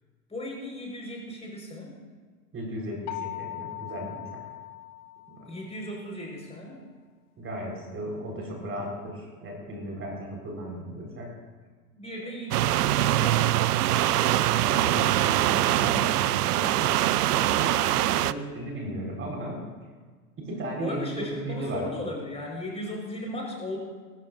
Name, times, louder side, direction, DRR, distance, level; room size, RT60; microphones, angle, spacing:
voice 1, 0.3-2.0 5.4-6.8 11.9-13.7 20.8-23.8, left 1 dB, 15° left, -2 dB, 4.9 m, -36 dB
voice 2, 2.5-4.4 5.4-5.5 7.4-11.3 14.5-19.6 20.4-21.8, right 1 dB, 30° right, -1 dB, 4.5 m, -36 dB
sound 1, 3.1-5.8, left 15 dB, 35° left, 0.8 m, -39 dB
sound 2, 12.5-18.3, right 14 dB, 80° right, 0.6 m, -23 dB
24.5 x 13.5 x 2.6 m, 1.5 s
hypercardioid pair, 100°, 46 cm